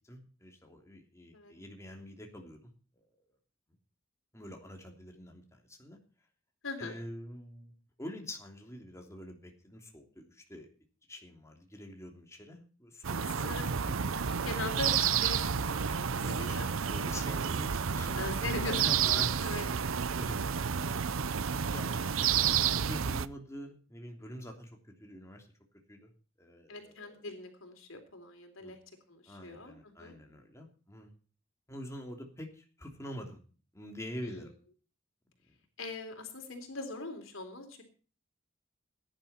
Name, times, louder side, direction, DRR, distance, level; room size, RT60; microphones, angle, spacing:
voice 1, 0.0-3.2 4.3-6.0 6.8-10.7 11.1-13.6 13.9-14.2 16.0-16.6 16.9-18.2 18.6-19.4 19.8-24.7 25.0-25.5 25.9-26.1 26.4-27.2 28.6-28.7 29.3-31.1 31.7-33.4 33.7-34.5, left 1 dB, 15° left, 2 dB, 3.1 m, -46 dB
voice 2, 6.6-7.0 13.4-13.8 14.4-16.7 18.2-19.0 19.4-19.7 21.7-22.0 26.7-28.8 29.1-29.7 30.0-30.1 34.3-34.4 35.8-37.8, left 3 dB, 75° left, 5 dB, 3.6 m, -41 dB
sound 1, 13.0-23.3, right 7 dB, 80° right, 0.7 m, -30 dB
17.5 x 10.5 x 4.4 m, 0.38 s
head